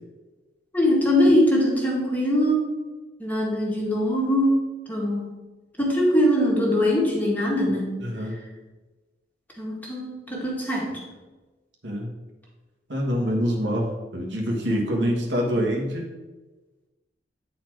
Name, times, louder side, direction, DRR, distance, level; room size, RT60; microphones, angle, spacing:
voice 1, 0.7-2.7 3.2-4.6 4.9-5.3 5.8-7.9 9.6-10.9 14.7-15.1, equal, 10° left, -3 dB, 1.5 m, -22 dB
voice 2, 8.0-8.4 11.8-12.1 12.9-16.1, equal, 75° right, 0 dB, 1.4 m, -25 dB
9.2 x 4.3 x 4.6 m, 1.2 s
head